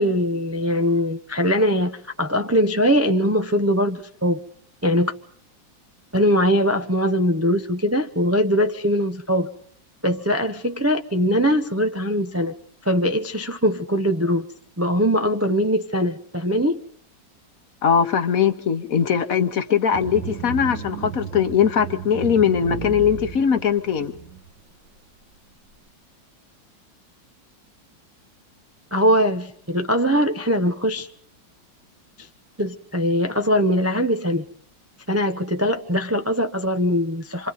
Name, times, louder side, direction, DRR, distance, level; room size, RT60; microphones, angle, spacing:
voice 1, 0.0-4.4 4.8-5.1 6.1-9.5 10.0-12.5 12.8-14.5 14.8-16.8 28.9-31.1 32.6-34.4 35.1-37.5, equal, 25° right, 0.3 m, -21 dB
voice 2, 17.8-24.1, left 7 dB, 55° left, 1.3 m, -20 dB
sound 1, 19.9-24.5, right 7 dB, 70° right, 2.4 m, -34 dB
27.0 x 26.5 x 4.1 m
omnidirectional pair, 2.0 m